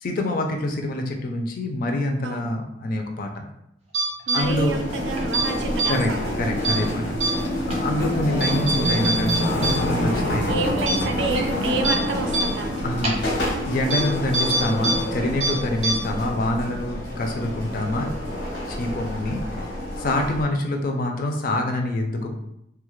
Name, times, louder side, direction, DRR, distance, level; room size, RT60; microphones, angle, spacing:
voice 1, 0.0-3.3 4.3-4.8 5.9-7.0 7.7-10.5 12.8-13.2 13.6-18.1 18.7-19.4 20.0-22.3, left 1 dB, 50° left, 3 dB, 0.4 m, -25 dB
sound 1, 3.9-4.4 5.2-5.4 5.8-5.9 6.6-6.8 7.2-7.3 7.7-7.8 8.4-9.7 10.0-10.1 10.5-10.6 10.9-11.0 11.3-11.4 11.8-11.9 12.3-12.4 13.0-13.1 13.9-14.0 14.3-14.9 15.2-15.5 15.8-15.9, right 2 dB, 35° right, 0.5 m, -23 dB
voice 2, 4.3-6.3 8.1-8.2 10.5-12.9 15.7-15.8, right 3 dB, 85° right, 5 dB, 0.4 m, -29 dB
sound 2, 4.4-20.4, left 1 dB, 80° left, 0.8 m, -27 dB
2.3 x 2.0 x 3.0 m, 0.81 s
head